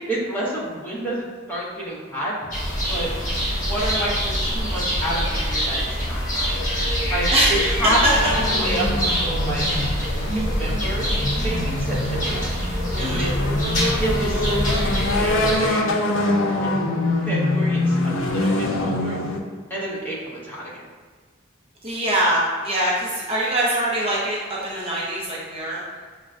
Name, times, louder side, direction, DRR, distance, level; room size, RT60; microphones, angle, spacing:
voice 1, 0.1-2.3 2.8-3.1 3.5-6.5 7.1-7.3 7.6-9.7 10.2-12.4 12.9-13.5 14.0-15.9 16.6-16.9 17.2-19.2 19.7-20.8, right 1 dB, 10° left, -7 dB, 0.8 m, -29 dB
sound 1, 2.5-15.6, equal, 40° left, 1.2 m, -25 dB
sound 2, 8.1-19.4, left 2 dB, 90° left, 0.5 m, -24 dB
voice 2, 21.8-25.8, right 1 dB, 30° right, -5 dB, 0.5 m, -23 dB
6.0 x 2.2 x 2.4 m, 1.5 s
head